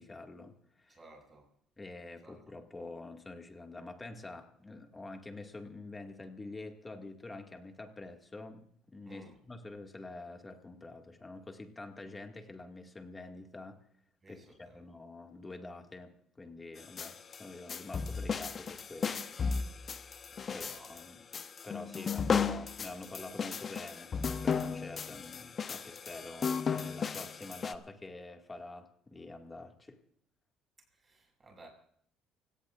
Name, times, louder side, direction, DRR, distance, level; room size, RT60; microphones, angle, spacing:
voice 1, 0.0-1.0 1.8-13.8 14.3-19.2 20.5-21.3 21.6-30.0, left 2 dB, 15° left, 2.0 m, -47 dB
voice 2, 0.9-1.5 2.2-2.5 9.0-9.4 14.2-14.8 20.3-21.0 22.0-22.1 30.8-31.7, right 2 dB, 25° right, 6.9 m, -57 dB
sound 1, 16.8-27.7, left 6 dB, 35° left, 0.9 m, -35 dB
29.5 x 17.5 x 2.5 m
cardioid pair, 125°, 0 cm